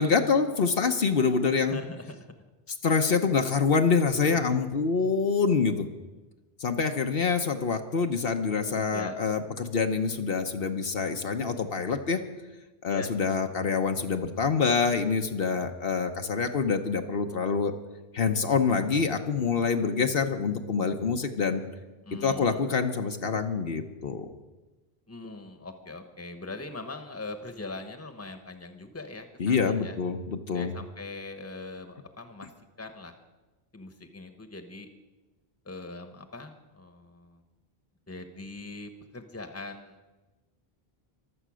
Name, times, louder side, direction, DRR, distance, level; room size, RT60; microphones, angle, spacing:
voice 1, 0.0-1.8 2.8-5.9 6.6-12.2 12.8-17.7 18.1-21.6 22.1-24.3 29.4-30.7, left 5 dB, 70° left, 5 dB, 1.2 m, -26 dB
voice 2, 1.6-2.2 4.2-4.6 8.9-9.2 12.9-13.1 22.0-22.7 25.1-30.0 30.5-32.5 32.8-33.1 33.7-34.9 35.6-37.4 38.1-40.0, left 3 dB, 15° left, 7 dB, 1.1 m, -41 dB
23.5 x 8.0 x 6.3 m, 1.2 s
omnidirectional pair, 1.0 m